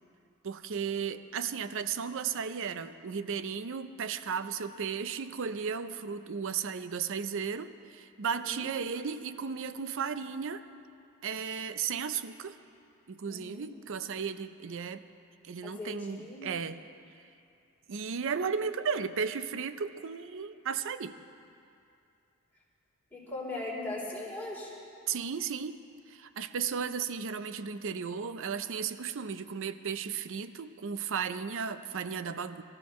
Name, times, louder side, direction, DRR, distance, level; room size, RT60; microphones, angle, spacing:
voice 1, 0.4-10.7 11.2-12.6 13.1-15.0 15.4-16.8 17.9-21.2 25.1-25.8 26.1-32.6, right 6 dB, 60° right, 12 dB, 0.5 m, -35 dB
voice 2, 8.2-8.7 13.3-13.7 15.6-16.4 23.1-24.7, left 2 dB, 10° left, -7 dB, 3.8 m, -39 dB
23.5 x 13.5 x 3.1 m, 2.6 s
head